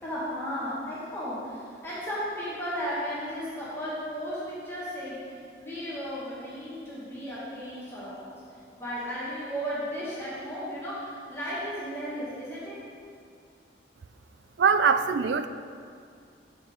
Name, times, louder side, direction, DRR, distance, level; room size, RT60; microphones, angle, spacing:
voice 1, 0.0-5.2 5.6-8.3 8.8-12.8, equal, 15° left, -9 dB, 1.8 m, -34 dB
voice 2, 14.6-15.5, right 6 dB, 70° right, 11 dB, 0.4 m, -22 dB
13.5 x 5.3 x 3.7 m, 2.3 s
head